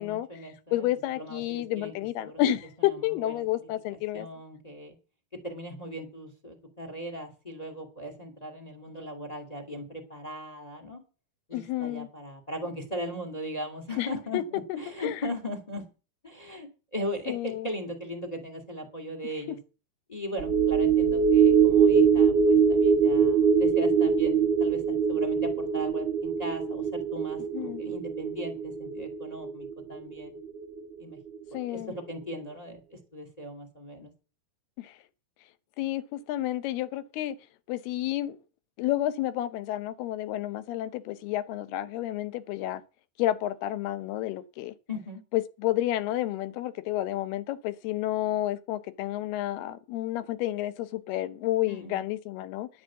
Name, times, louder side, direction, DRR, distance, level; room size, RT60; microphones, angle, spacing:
voice 1, 0.0-0.9 1.2-1.9 2.2-2.4 2.9-3.4 3.9-4.9 5.4-11.0 11.5-15.8 16.2-19.6 20.1-30.3 31.0-31.2 31.7-34.1 44.9-45.2 51.7-52.0, equal, 15° left, 1.6 m, -38 dB
voice 2, 0.7-4.3 11.5-12.1 14.0-14.4 15.0-15.2 17.3-17.7 27.5-27.8 31.5-32.0 34.8-34.9 35.8-37.4 37.7-38.4 38.8-42.8 43.2-44.7 45.3-52.7, left 14 dB, 80° left, 2.8 m, -30 dB
sound 1, 20.4-31.0 31.3-31.5, right 6 dB, 70° right, 1.1 m, -23 dB
11.5 x 7.3 x 7.3 m
omnidirectional pair, 4.6 m